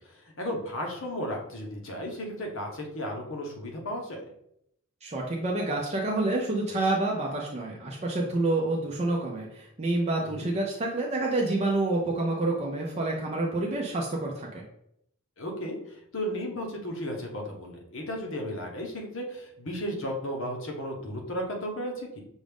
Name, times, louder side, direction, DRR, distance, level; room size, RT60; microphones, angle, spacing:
voice 1, 0.4-4.2 10.2-10.5 15.4-15.8 16.1-22.2, equal, 60° left, 1 dB, 1.0 m, -34 dB
voice 2, 5.0-14.6, right 2 dB, 30° right, -2 dB, 0.5 m, -28 dB
6.2 x 2.5 x 3.4 m, 0.75 s
head